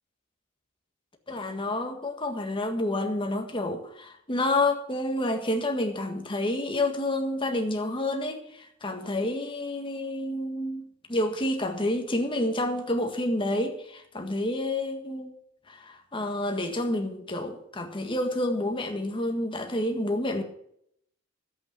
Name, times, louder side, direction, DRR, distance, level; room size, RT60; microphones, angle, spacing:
voice 1, 1.3-10.8 11.1-15.3 15.7-20.4, left 1 dB, 25° left, 1.6 m, -29 dB
11.5 x 8.6 x 7.5 m
head